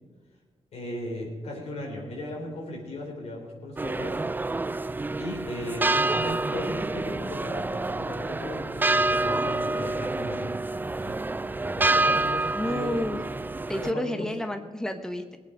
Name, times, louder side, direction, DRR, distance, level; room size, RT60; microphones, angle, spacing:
voice 1, 0.7-4.2 5.2-10.6 11.0-11.2 11.7-13.1 13.8-14.3, left 1 dB, 75° left, 0 dB, 3.7 m, -36 dB
sound 1, 3.8-13.9, right 2 dB, 15° right, 0.4 m, -28 dB
voice 2, 12.5-13.2 13.7-15.4, left 1 dB, 5° left, 7 dB, 1.0 m, -30 dB
18.5 x 8.5 x 5.1 m, 1.4 s
cardioid pair, 60°, 11 cm